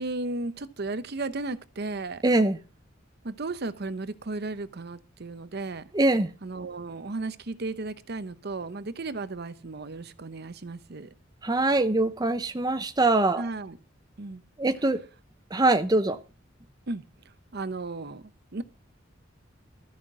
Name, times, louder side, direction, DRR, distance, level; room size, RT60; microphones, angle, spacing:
voice 1, 0.0-2.2 3.2-5.8 6.4-11.1 13.4-13.8 14.2-14.4 16.9-17.0 17.5-18.2 18.5-18.6, right 3 dB, 55° right, 0.8 m, -34 dB
voice 2, 2.2-2.6 5.9-6.3 11.4-13.5 14.6-15.0 15.5-16.2, right 2 dB, 20° right, 0.7 m, -23 dB
13.5 x 5.8 x 7.3 m
head